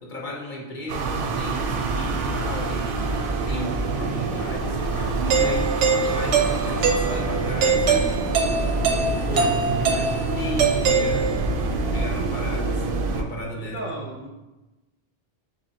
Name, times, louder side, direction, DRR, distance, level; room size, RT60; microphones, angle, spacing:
voice 1, 0.0-8.7 9.3-11.4 11.9-13.8, equal, 50° left, -2 dB, 0.8 m, -34 dB
sound 1, 0.9-13.2, right 3 dB, 60° right, 0.6 m, -26 dB
sound 2, 4.8-5.0 5.4-5.5 6.0-6.3 6.7-7.6 7.9-9.0 9.3-9.6, left 3 dB, 90° left, 1.0 m, -43 dB
Doorbell, 5.3-11.6, right 5 dB, 85° right, 0.9 m, -23 dB
voice 2, 13.6-14.3, equal, 15° right, -3 dB, 0.5 m, -35 dB
3.9 x 3.3 x 3.9 m, 1.1 s
omnidirectional pair, 1.2 m